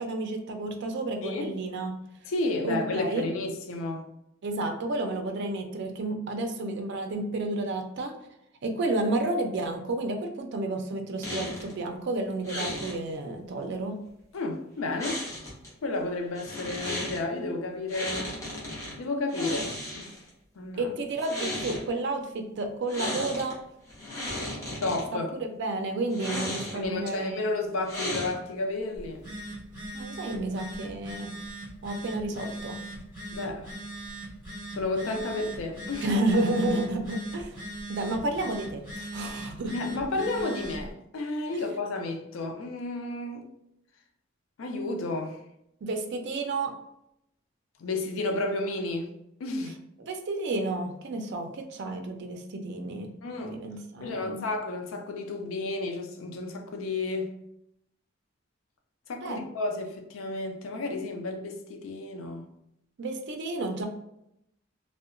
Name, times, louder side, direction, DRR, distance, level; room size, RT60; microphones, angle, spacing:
voice 1, 0.0-2.0 2.6-3.3 4.4-8.1 8.6-14.0 20.8-23.5 25.4-27.4 29.9-31.3 31.8-32.8 36.0-37.6 37.9-39.7 45.8-46.7 50.1-54.4 59.2-59.4 63.0-63.9, right 2 dB, 60° right, 0.4 m, -31 dB
voice 2, 1.2-1.5 2.3-4.1 14.3-15.3 15.8-18.4 19.0-20.2 20.6-20.9 24.8-25.3 26.7-29.3 33.3-33.7 34.7-36.1 39.7-43.5 44.6-45.4 47.8-49.1 49.4-49.8 53.2-53.6 54.0-57.3 59.1-62.5, left 2 dB, 90° left, 0.4 m, -32 dB
sound 1, 11.2-11.7 12.4-13.0 15.0-15.7 16.3-17.2 17.9-18.9 19.3-20.3 21.1-21.8 22.9-23.5 23.9-25.0 26.1-26.9 27.9-28.6, left 1 dB, 15° left, 0.8 m, -34 dB
Telephone, 29.0-40.9, right 1 dB, 15° right, 1.4 m, -40 dB
2.7 x 2.1 x 2.4 m
head